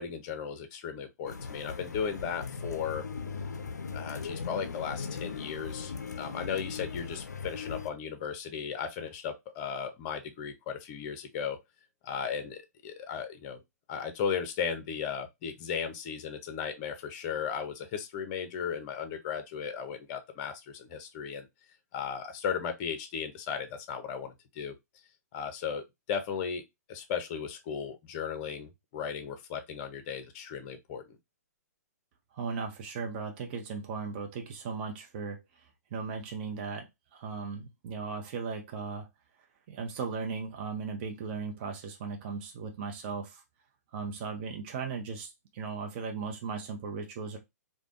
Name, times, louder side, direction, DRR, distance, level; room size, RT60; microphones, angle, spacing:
voice 1, 0.0-3.0 3.9-11.6 12.0-13.6 13.9-21.5 21.9-24.7 25.3-31.0, left 7 dB, 35° left, 0.6 m, -36 dB
sound 1, 1.3-7.9, left 5 dB, 80° left, 0.4 m, -39 dB
voice 2, 32.3-35.4 35.9-36.9 37.1-39.1 39.7-43.4 43.9-47.4, right 5 dB, 40° right, 0.6 m, -37 dB
3.3 x 2.2 x 2.5 m
figure-of-eight pair, 120°, 9 cm